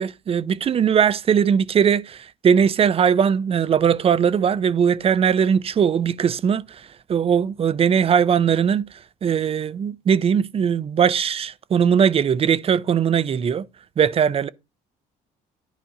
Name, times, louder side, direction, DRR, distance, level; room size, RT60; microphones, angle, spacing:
voice 1, 0.0-8.9 9.2-13.6 14.0-14.5, right 7 dB, 35° right, 0.5 m, -20 dB
10.5 x 5.0 x 2.7 m
cardioid pair, 110°, 17 cm